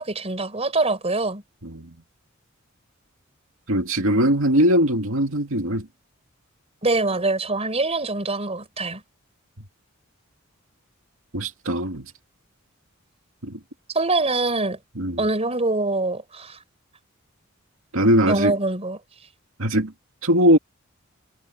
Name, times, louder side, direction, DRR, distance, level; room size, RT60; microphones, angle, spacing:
voice 1, 0.0-1.4 6.8-9.0 13.9-14.8 15.2-16.6 18.3-19.0, right 2 dB, 30° right, 4.5 m, -24 dB
voice 2, 3.7-5.9 11.3-12.1 13.4-13.6 15.0-15.2 17.9-18.5 19.6-19.9 20.2-20.6, equal, 75° right, 2.3 m, -20 dB
head